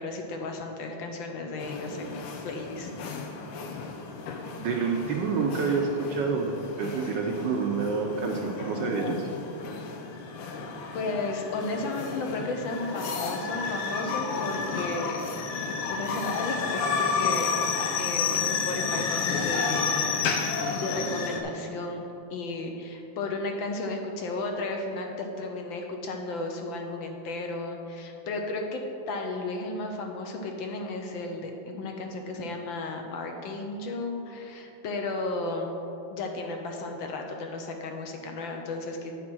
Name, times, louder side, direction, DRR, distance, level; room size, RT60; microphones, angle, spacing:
voice 1, 0.0-2.9 10.9-15.2 15.8-17.5 18.0-35.7 36.1-39.1, left 2 dB, 70° left, 3 dB, 1.3 m, -34 dB
sound 1, 1.6-21.4, left 5 dB, 90° left, 1.7 m, -31 dB
voice 2, 4.6-9.3, right 5 dB, 70° right, 1 dB, 1.1 m, -28 dB
8.4 x 4.3 x 6.1 m, 2.7 s
omnidirectional pair, 2.4 m